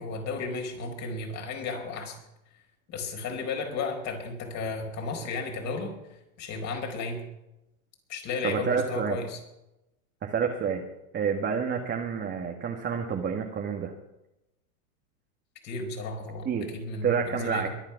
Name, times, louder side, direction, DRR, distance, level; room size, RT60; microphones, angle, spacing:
voice 1, 0.0-2.2 2.9-5.9 6.4-7.2 8.1-9.4 15.6-17.7, left 3 dB, 40° left, 3 dB, 4.8 m, -34 dB
voice 2, 8.4-9.2 10.2-10.8 11.1-13.9 16.5-16.7 17.0-17.7, right 6 dB, 25° right, 1 dB, 1.9 m, -28 dB
22.5 x 8.8 x 5.9 m, 0.93 s
hypercardioid pair, 105°, 42 cm